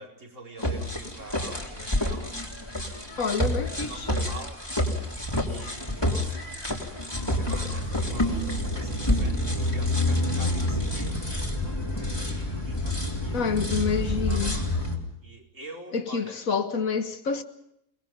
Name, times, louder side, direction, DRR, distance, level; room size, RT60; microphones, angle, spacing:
voice 1, 0.0-2.8 3.7-4.6 5.4-6.5 7.3-14.7 15.2-16.4, right 2 dB, 65° right, 5.1 m, -45 dB
sound 1, 0.6-15.0, left 1 dB, 15° left, 3.7 m, -28 dB
voice 2, 3.2-4.1 13.3-14.6 15.9-17.4, left 5 dB, 80° left, 2.0 m, -28 dB
29.5 x 20.5 x 5.4 m
omnidirectional pair, 1.4 m